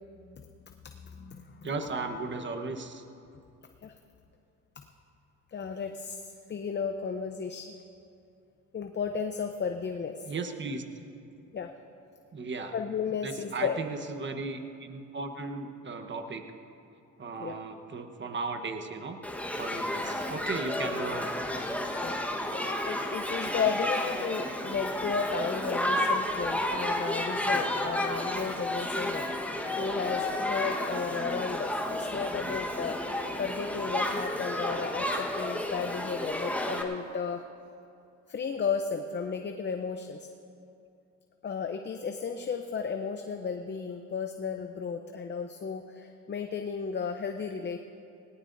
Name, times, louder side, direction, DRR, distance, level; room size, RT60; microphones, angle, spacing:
voice 1, 1.0-1.7 3.8-3.9 5.5-7.7 8.7-10.2 11.5-11.7 12.7-13.8 17.4-17.6 22.0-22.2 22.9-29.3 29.8-33.0 33.4-37.4 38.3-40.3 41.4-47.8, left 6 dB, 35° left, 6 dB, 0.7 m, -34 dB
voice 2, 1.6-3.0 10.2-10.8 12.3-12.7 13.2-16.4 17.2-19.2 19.6-21.3, right 3 dB, 40° right, 6 dB, 1.2 m, -36 dB
Shout / Human group actions, 19.2-36.8, left 1 dB, 5° left, 1.3 m, -31 dB
19.0 x 18.5 x 2.7 m, 2.6 s
cardioid pair, 90°, 30 cm